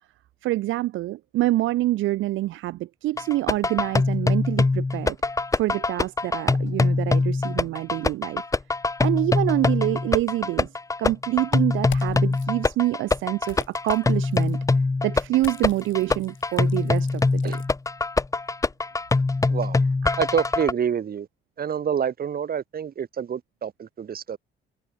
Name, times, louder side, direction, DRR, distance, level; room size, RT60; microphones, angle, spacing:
voice 1, 0.4-5.2 5.5-8.4 9.0-10.7 11.0-14.6 15.0-17.6, right 16 dB, 80° right, 0.6 m, -26 dB
sound 1, 3.2-20.7, left 3 dB, 15° left, 0.7 m, -23 dB
sound 2, 11.8-12.5 13.4-14.6 15.4-17.7, left 12 dB, 75° left, 2.4 m, -44 dB
voice 2, 20.2-21.3 21.6-24.4, right 8 dB, 50° right, 1.8 m, -27 dB
cardioid pair, 90°, 20 cm